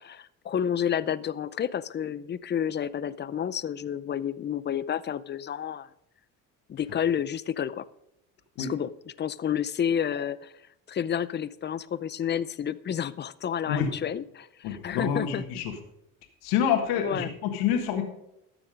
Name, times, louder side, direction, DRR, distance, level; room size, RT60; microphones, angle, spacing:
voice 1, 0.0-5.9 6.7-7.9 8.6-10.5 10.9-15.6 17.0-17.3, left 9 dB, 30° left, 17 dB, 0.5 m, -30 dB
voice 2, 14.6-15.7 16.4-18.0, left 8 dB, 90° left, 5 dB, 1.7 m, -27 dB
13.0 x 7.1 x 5.1 m, 0.82 s
cardioid pair, 105°, 38 cm